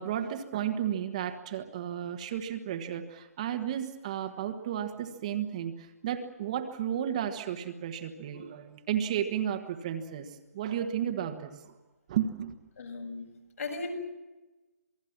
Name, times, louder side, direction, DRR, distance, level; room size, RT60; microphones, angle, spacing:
voice 1, 0.0-11.7 12.1-12.5, right 9 dB, 25° right, 6 dB, 1.4 m, -33 dB
voice 2, 12.8-13.3 13.6-13.9, left 3 dB, 65° left, 3 dB, 7.2 m, -36 dB
27.5 x 19.5 x 7.4 m, 1.1 s
hypercardioid pair, 170°, 9 cm